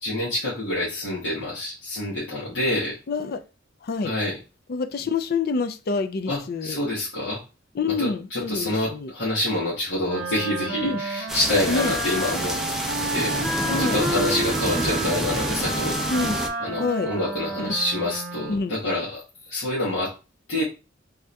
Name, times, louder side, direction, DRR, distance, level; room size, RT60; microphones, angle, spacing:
voice 1, 0.0-3.0 4.0-4.4 6.2-7.4 8.0-12.6 13.1-13.4 13.8-16.0 16.6-20.1 20.5-20.6, left 1 dB, 80° left, 1.6 m, -27 dB
voice 2, 3.1-3.4 3.8-4.1 4.7-6.8 7.7-9.1 10.8-11.0 11.7-12.0 13.6-14.0 16.1-16.4 16.8-17.1 17.6-17.7 18.0-18.1 18.5-18.7, left 4 dB, 55° left, 0.4 m, -27 dB
Wind instrument woodwind instrument, 10.0-18.7, right 2 dB, 65° right, 0.9 m, -31 dB
sound 1, 11.3-16.5, equal, ahead, 0.5 m, -28 dB
3.5 x 2.8 x 3.4 m
head